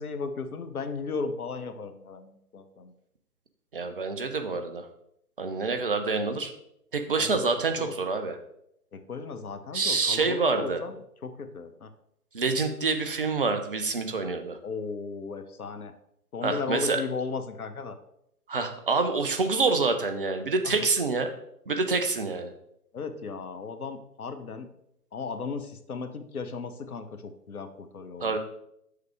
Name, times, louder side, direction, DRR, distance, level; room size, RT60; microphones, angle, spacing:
voice 1, 0.0-2.9 7.2-7.4 7.8-7.9 8.9-11.9 14.6-15.9 16.3-18.0 20.6-20.7 22.9-24.7 25.1-28.4, left 4 dB, 65° left, 9 dB, 0.9 m, -36 dB
voice 2, 3.7-4.8 5.4-6.5 6.9-8.4 9.7-10.8 12.3-14.6 16.4-17.0 18.5-21.3 21.7-22.5 28.2-28.4, right 4 dB, 35° right, 7 dB, 0.7 m, -27 dB
6.6 x 6.4 x 3.5 m, 0.76 s
figure-of-eight pair, 140°, 48 cm